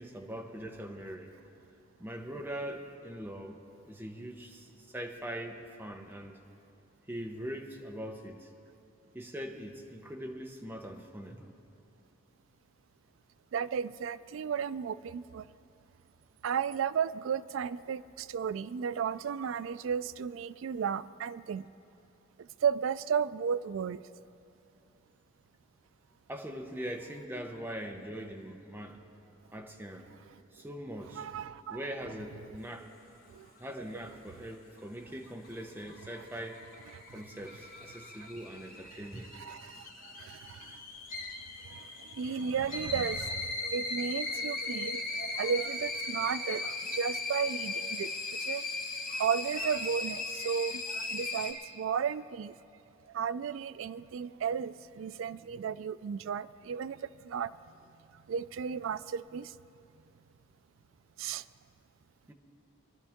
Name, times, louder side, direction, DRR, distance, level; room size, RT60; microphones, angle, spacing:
voice 1, 0.0-1.4 2.0-6.4 7.1-8.5 9.1-11.5 26.3-29.0 29.5-30.1 30.5-31.3 31.7-32.9 33.6-36.7 37.1-39.3 62.3-62.4, equal, 10° right, 2 dB, 0.9 m, -42 dB
voice 2, 13.5-15.5 16.4-21.7 22.4-24.0 31.2-31.8 33.3-33.5 36.9-37.0 38.2-38.3 39.3-40.8 41.6-48.6 49.1-52.5 53.1-57.5 58.1-59.6 61.2-61.4, right 7 dB, 75° right, 16 dB, 0.3 m, -34 dB
sound 1, 35.2-51.5, left 3 dB, 45° left, 1.4 m, -38 dB
22.5 x 11.5 x 3.6 m, 2.7 s
head